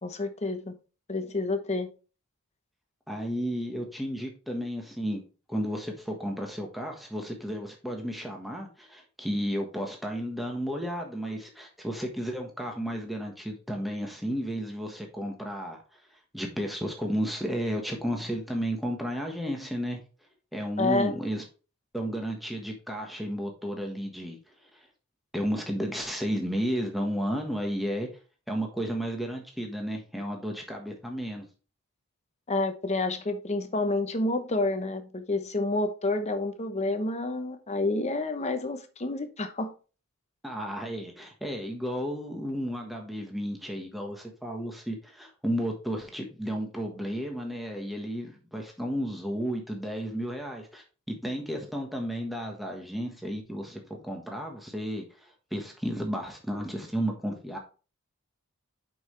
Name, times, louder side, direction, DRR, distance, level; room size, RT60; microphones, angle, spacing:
voice 1, 0.0-0.7 1.1-1.9 20.8-21.2 32.5-39.7, left 2 dB, 30° left, 0.9 m, -29 dB
voice 2, 3.1-5.2 5.5-15.8 16.3-20.0 20.5-21.4 21.9-24.9 25.3-28.1 28.5-31.5 40.4-57.6, equal, ahead, 1.3 m, -33 dB
7.1 x 5.6 x 3.3 m
head